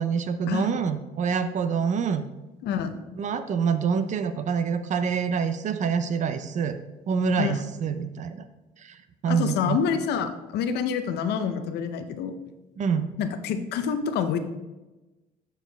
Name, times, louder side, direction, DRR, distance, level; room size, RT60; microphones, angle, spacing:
voice 1, 0.0-2.3 3.2-6.8 7.1-8.4 8.8-9.0 9.2-9.8 12.8-13.1, right 6 dB, 45° right, 11 dB, 0.5 m, -26 dB
voice 2, 2.6-3.0 7.4-7.6 9.3-12.3 13.2-14.4, left 7 dB, 75° left, 9 dB, 0.6 m, -27 dB
7.8 x 4.6 x 3.4 m, 1.1 s
cardioid pair, 110°, 17 cm